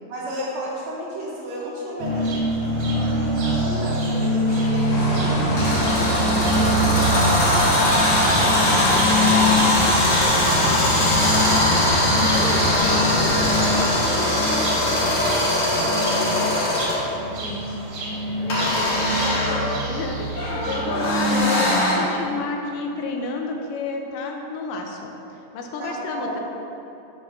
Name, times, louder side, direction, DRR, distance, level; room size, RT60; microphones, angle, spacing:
voice 1, 0.1-5.4 6.0-9.5 10.4-11.6 12.2-17.1 25.8-26.4, right 1 dB, 70° right, -5 dB, 1.8 m, -33 dB
sound 1, 2.0-21.4, equal, 50° right, 1.9 m, -25 dB
sound 2, 4.5-17.0 18.5-21.9, left 1 dB, 45° left, 2.1 m, -21 dB
sound 3, 4.9-13.8, left 1 dB, 65° left, 2.5 m, -26 dB
voice 2, 5.6-6.0 12.1-12.6 17.3-17.8 18.4-25.1 25.5-26.4, left 3 dB, 80° left, 2 dB, 2.2 m, -31 dB
5.8 x 5.2 x 5.9 m, 3.0 s
omnidirectional pair, 3.8 m